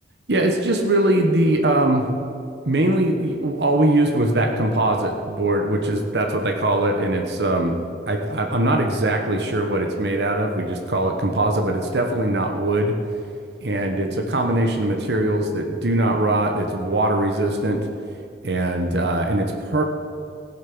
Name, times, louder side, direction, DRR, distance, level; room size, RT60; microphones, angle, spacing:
voice 1, 0.3-2.0 2.6-7.8 8.1-12.9 13.6-17.8 18.4-19.8, right 1 dB, 75° right, 3 dB, 1.2 m, -21 dB
17.0 x 7.4 x 6.2 m, 2.5 s
head